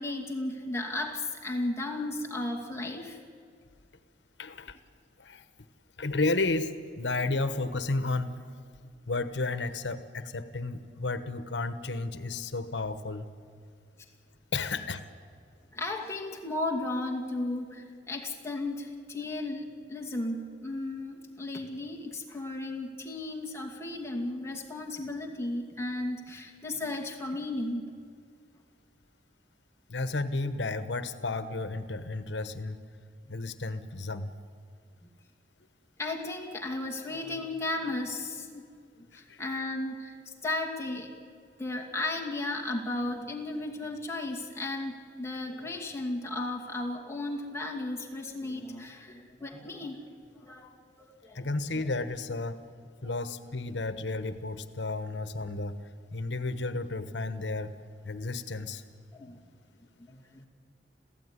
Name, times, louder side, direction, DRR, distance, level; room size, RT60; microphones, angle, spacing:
voice 1, 0.0-3.2 15.7-27.8 33.3-33.4 36.0-38.6 39.0-41.1 41.6-50.0 50.4-51.5 53.0-53.3 59.1-59.4 60.1-60.5, left 2 dB, 15° left, 1 dB, 2.4 m, -35 dB
voice 2, 4.4-4.8 5.2-5.4 6.0-8.3 9.1-13.3 14.5-15.0 29.9-32.8 33.3-34.3 39.1-39.4 51.3-52.6 53.0-55.8 56.1-57.7 58.0-58.8, left 3 dB, 85° left, 12 dB, 1.2 m, -32 dB
27.0 x 16.0 x 9.8 m, 2.2 s
head